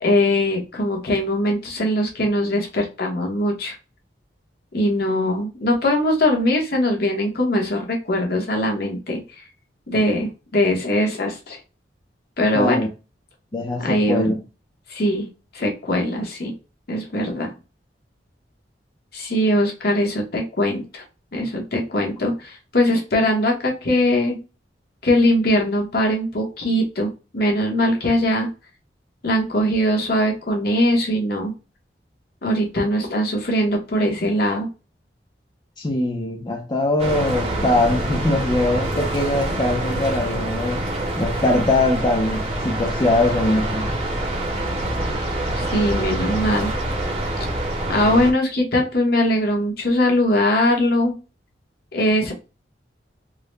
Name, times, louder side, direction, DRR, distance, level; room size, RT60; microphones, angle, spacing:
voice 1, 0.0-3.7 4.7-9.2 9.9-11.6 12.4-12.8 13.8-14.2 14.9-15.3 15.5-16.5 16.9-17.5 19.1-21.0 21.3-24.4 25.0-28.5 29.2-31.5 32.4-34.7 45.5-46.7 47.9-51.1 51.9-52.3, left 1 dB, 60° left, 1.1 m, -21 dB
voice 2, 12.5-12.9 13.5-14.4 35.8-40.8 41.2-43.9, left 2 dB, 25° left, 0.5 m, -22 dB
sound 1, 37.0-48.3, right 1 dB, 35° right, 1.2 m, -25 dB
3.7 x 2.1 x 3.2 m
head